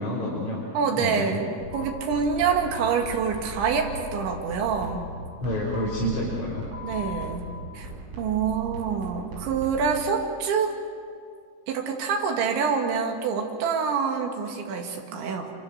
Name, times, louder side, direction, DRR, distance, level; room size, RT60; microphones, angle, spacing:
voice 1, 0.0-0.6 1.0-1.3 5.4-6.6, equal, 30° left, -6 dB, 4.4 m, -28 dB
voice 2, 0.7-5.1 6.8-7.9 8.2-10.8 11.7-15.5, right 6 dB, 70° right, 2 dB, 4.3 m, -26 dB
sound 1, 1.6-10.0, right 2 dB, 90° right, 8.5 m, -39 dB
sound 2, 1.7-1.9 2.7-2.9 3.7-3.8 4.7-4.8 5.7-5.8 6.7-7.2, left 7 dB, 40° right, 4.5 m, -39 dB
27.0 x 25.5 x 6.6 m, 2.2 s
omnidirectional pair, 5.8 m